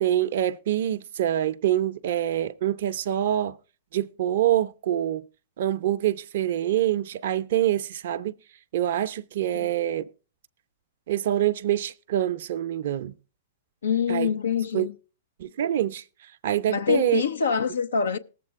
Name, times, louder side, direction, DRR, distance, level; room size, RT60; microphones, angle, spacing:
voice 1, 0.0-3.6 3.9-5.2 5.6-8.3 8.7-10.0 11.1-13.1 14.1-14.3 14.7-14.9 15.4-16.0 16.4-17.2, right 12 dB, 60° right, 0.5 m, -25 dB
voice 2, 13.8-14.9 16.7-18.2, left 6 dB, 80° left, 0.6 m, -25 dB
19.0 x 7.5 x 3.5 m
hypercardioid pair, 115°, 0 cm